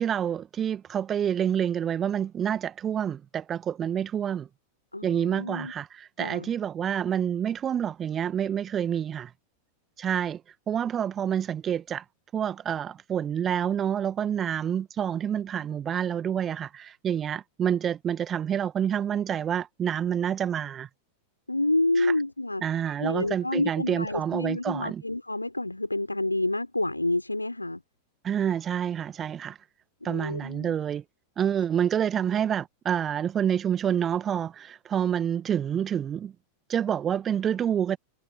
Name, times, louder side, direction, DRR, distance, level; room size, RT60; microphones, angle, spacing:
voice 1, 0.0-4.5 5.0-9.3 10.0-10.4 10.7-12.0 12.3-20.9 22.0-22.1 22.6-25.0 28.2-29.6 30.0-31.0 31.4-36.3 36.7-38.0, right 9 dB, 25° right, 1.7 m, -28 dB
voice 2, 4.9-5.7 6.2-6.5 21.5-22.6 23.0-27.8 30.0-30.8, left 2 dB, 85° left, 4.7 m, -28 dB
figure-of-eight pair, 90°, 0 cm